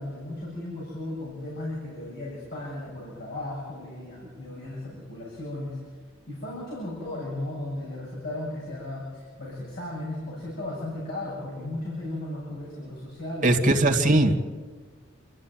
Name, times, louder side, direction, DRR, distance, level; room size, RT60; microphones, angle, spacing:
voice 1, 0.0-5.8 6.3-13.8, left 1 dB, 55° left, -5 dB, 7.9 m, -35 dB
voice 2, 13.4-14.3, right 2 dB, 40° right, 3 dB, 2.6 m, -20 dB
28.5 x 14.5 x 9.4 m, 1.5 s
head